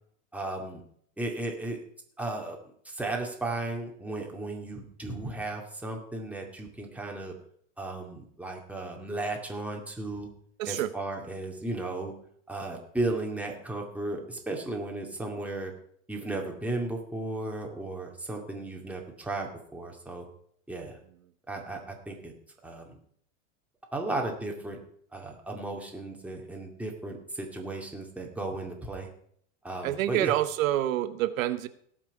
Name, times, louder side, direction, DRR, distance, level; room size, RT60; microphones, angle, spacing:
voice 1, 0.3-0.8 1.2-1.8 2.2-2.6 2.9-7.4 7.8-10.3 10.6-12.1 12.5-15.7 16.1-20.3 20.7-21.0 21.5-22.3 22.6-23.0 23.9-24.8 25.1-29.1 29.6-30.3, right 2 dB, 5° right, 0 dB, 2.1 m, -35 dB
voice 2, 10.6-10.9 29.8-31.7, right 13 dB, 90° right, 11 dB, 0.9 m, -27 dB
18.0 x 6.1 x 4.7 m, 0.63 s
supercardioid pair, 130°, 39 cm